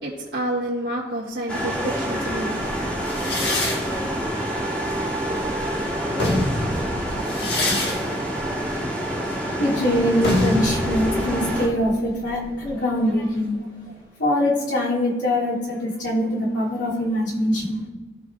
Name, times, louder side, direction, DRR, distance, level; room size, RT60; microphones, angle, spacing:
voice 1, 0.0-2.6 12.5-12.6 13.9-14.0, right 1 dB, 75° right, -8 dB, 1.5 m, -29 dB
sound 1, 1.5-11.7, equal, 5° left, 1.5 m, -27 dB
sound 2, 3.0-5.5 6.0-13.5, left 1 dB, 60° left, 1.8 m, -28 dB
voice 2, 9.6-13.6 14.2-17.8, left 1 dB, 80° left, -7 dB, 2.8 m, -23 dB
14.5 x 5.8 x 2.5 m, 1.2 s
head